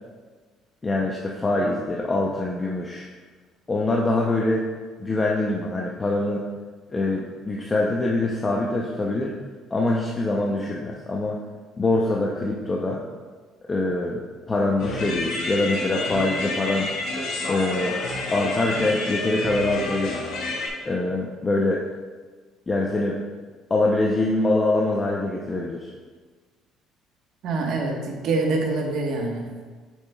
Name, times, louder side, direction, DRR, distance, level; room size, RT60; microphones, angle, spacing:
voice 1, 0.8-3.1 3.7-4.6 5.0-6.4 6.9-9.3 9.7-11.4 11.8-13.0 13.7-14.2 14.5-16.9 17.5-18.0 18.3-20.2 20.8-21.8 22.7-23.2 23.7-25.9, left 2 dB, 20° left, -2 dB, 0.6 m, -24 dB
sound 1, 14.8-20.7, left 2 dB, 80° left, 2.0 m, -29 dB
voice 2, 27.4-29.5, right 3 dB, 60° right, 1 dB, 1.2 m, -25 dB
8.0 x 7.2 x 2.3 m, 1.4 s
cardioid pair, 140°, 0 cm